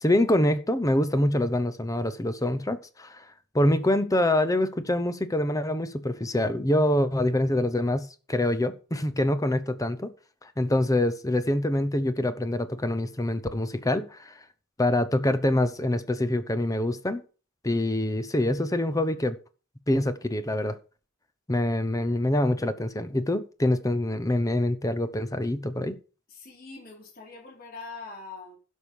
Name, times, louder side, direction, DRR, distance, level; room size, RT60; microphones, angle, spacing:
voice 1, 0.0-3.2 3.5-10.1 10.6-14.4 14.8-17.2 17.6-19.4 19.9-20.8 21.5-26.0, left 1 dB, 15° left, 0.9 m, -25 dB
voice 2, 26.4-28.6, left 4 dB, 45° left, 4.1 m, -42 dB
12.0 x 6.5 x 5.5 m
head